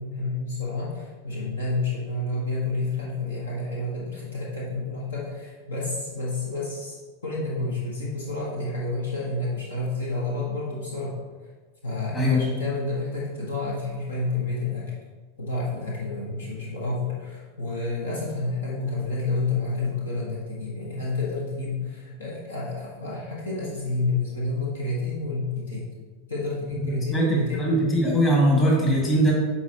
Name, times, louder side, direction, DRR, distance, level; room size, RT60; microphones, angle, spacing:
voice 1, 0.0-7.0 7.2-11.1 11.8-14.9 15.4-25.9 26.3-27.8, left 3 dB, 65° left, -4 dB, 1.4 m, -29 dB
voice 2, 27.1-29.3, right 1 dB, 20° left, -3 dB, 1.9 m, -21 dB
9.2 x 4.5 x 3.0 m, 1.4 s
figure-of-eight pair, 90°, 0 cm